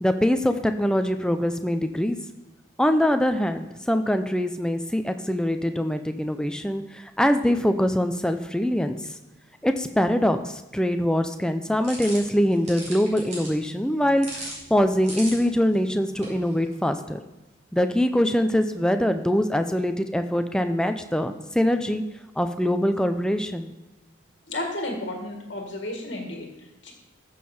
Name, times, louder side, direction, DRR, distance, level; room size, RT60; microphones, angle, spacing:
voice 1, 0.0-2.2 2.8-9.1 9.6-17.2 17.7-22.0 22.4-23.7, equal, 5° left, 7 dB, 0.5 m, -23 dB
sound 1, 11.8-17.0, right 1 dB, 35° right, 3.7 m, -40 dB
voice 2, 24.5-26.9, left 1 dB, 55° left, 1 dB, 1.8 m, -33 dB
15.0 x 6.6 x 4.3 m, 1.0 s
head